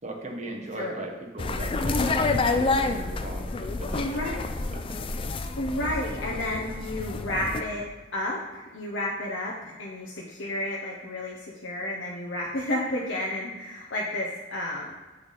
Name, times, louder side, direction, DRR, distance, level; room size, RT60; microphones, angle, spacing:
voice 1, 0.0-4.2 4.7-5.0, right 2 dB, 35° right, 1 dB, 1.0 m, -38 dB
voice 2, 0.7-1.1 4.0-4.4 5.6-15.0, left 1 dB, 70° left, -2 dB, 0.7 m, -31 dB
sound 1, 1.4-7.6, left 3 dB, 25° left, 0.3 m, -28 dB
8.0 x 3.3 x 4.0 m, 1.2 s
head